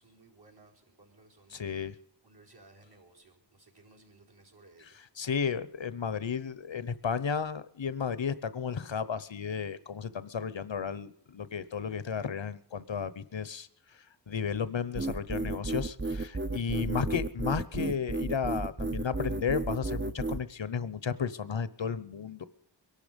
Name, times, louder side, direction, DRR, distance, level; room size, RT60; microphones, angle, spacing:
voice 1, 0.0-5.0, right 2 dB, 60° right, -1 dB, 4.7 m, -59 dB
voice 2, 1.5-1.9 5.2-22.5, left 6 dB, 85° left, 16 dB, 1.0 m, -33 dB
sound 1, 14.9-20.4, right 2 dB, 25° right, 0.7 m, -33 dB
22.5 x 12.0 x 5.2 m, 0.71 s
wide cardioid pair, 60°, 44 cm